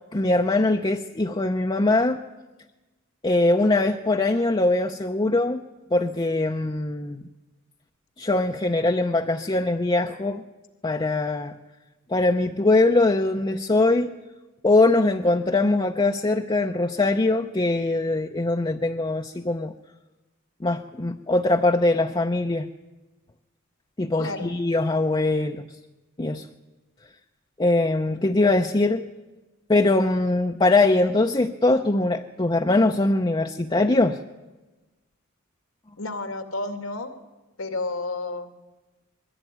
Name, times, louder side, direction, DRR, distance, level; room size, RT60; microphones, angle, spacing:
voice 1, 0.1-2.2 3.2-5.6 5.9-7.2 8.2-10.4 10.8-11.5 12.1-14.1 14.6-19.7 20.6-22.7 24.0-25.7 26.2-26.5 27.6-29.1 29.7-34.2, left 2 dB, 20° left, 3 dB, 0.6 m, -22 dB
voice 2, 24.2-24.5 36.0-37.1 37.6-38.5, left 2 dB, 85° left, 7 dB, 2.3 m, -31 dB
21.5 x 15.0 x 9.3 m, 1.1 s
head